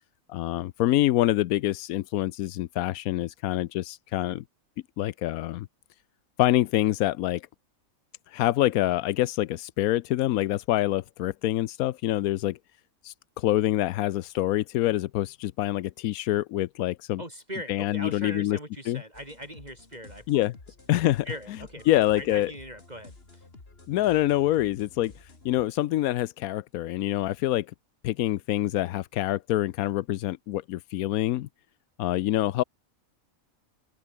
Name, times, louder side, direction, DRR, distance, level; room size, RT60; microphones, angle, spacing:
voice 1, 0.3-4.4 5.0-5.7 6.4-7.4 8.3-12.6 13.0-17.2 17.7-18.6 18.9-19.0 20.3-20.5 20.9-21.3 21.9-22.5 23.9-27.7 28.0-31.5 32.0-32.6, left 15 dB, 90° left, 1.1 m, -26 dB
voice 2, 17.2-20.5 21.2-23.5, equal, 30° right, 4.8 m, -40 dB
sound 1, 19.1-25.6, left 3 dB, 45° left, 3.1 m, -51 dB
open air
omnidirectional pair, 1.5 m